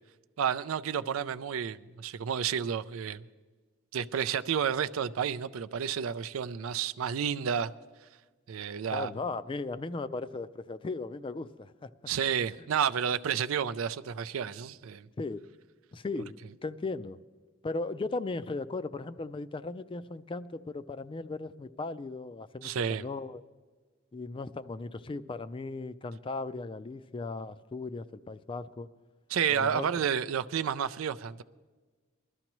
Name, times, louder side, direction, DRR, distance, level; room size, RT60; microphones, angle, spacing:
voice 1, 0.4-3.2 3.9-7.7 8.5-9.1 12.1-15.1 22.6-23.0 29.3-31.4, right 8 dB, 85° right, 0.4 m, -31 dB
voice 2, 8.9-11.9 15.2-15.4 15.9-17.2 17.6-23.4 24.1-28.9 29.5-29.8, left 3 dB, 25° left, 0.3 m, -37 dB
21.0 x 13.0 x 3.0 m
head